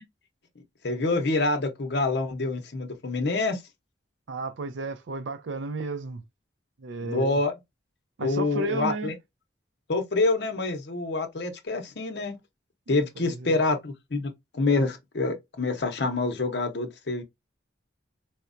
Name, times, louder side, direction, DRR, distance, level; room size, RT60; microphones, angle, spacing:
voice 1, 0.8-3.6 7.0-7.5 8.2-9.1 9.9-12.4 12.9-17.2, left 3 dB, 60° left, 0.7 m, -27 dB
voice 2, 4.3-6.2 6.8-7.4 8.2-9.2 12.9-13.6, right 3 dB, 75° right, 0.5 m, -33 dB
4.3 x 2.1 x 2.5 m
head